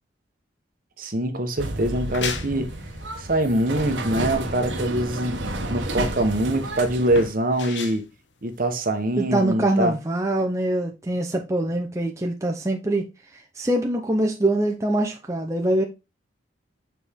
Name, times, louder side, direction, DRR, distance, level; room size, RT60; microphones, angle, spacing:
voice 1, 1.0-2.7 3.2-5.4 5.7-8.1 8.4-10.0, right 1 dB, 50° right, 1.0 m, -24 dB
sound 1, 1.6-7.2, right 2 dB, 85° right, 1.3 m, -31 dB
sound 2, 1.8-9.2, left 6 dB, 75° left, 0.9 m, -37 dB
voice 2, 9.2-13.1 13.3-15.8, right 1 dB, 15° right, 0.7 m, -24 dB
6.6 x 4.4 x 3.5 m
head